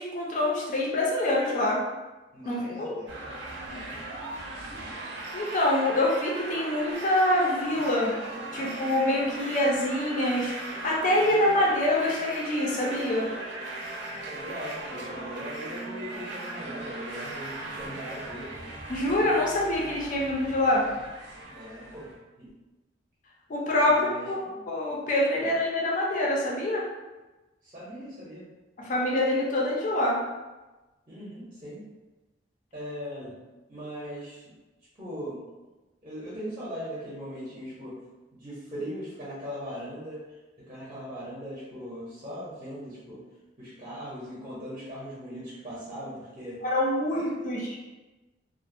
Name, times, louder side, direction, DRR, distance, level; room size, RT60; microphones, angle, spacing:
voice 1, 0.0-1.8 2.5-2.9 4.8-4.9 5.3-8.1 8.5-13.3 18.9-20.9 23.5-26.8 28.8-30.2 46.6-47.8, left 1 dB, 45° left, -3 dB, 0.4 m, -25 dB
voice 2, 2.3-3.3 3.6-4.0 14.1-18.5 21.5-22.1 22.4-22.5 23.8-24.7 25.3-25.5 27.6-28.5 31.1-31.8 32.7-33.4 33.7-34.4 34.9-35.4 36.0-38.0 38.3-40.2 40.7-43.2 43.6-46.6 47.1-47.3, equal, 30° right, -8 dB, 0.6 m, -39 dB
sound 1, 3.1-22.2, right 2 dB, 80° right, 0.5 m, -38 dB
2.4 x 2.0 x 2.5 m, 1.1 s
head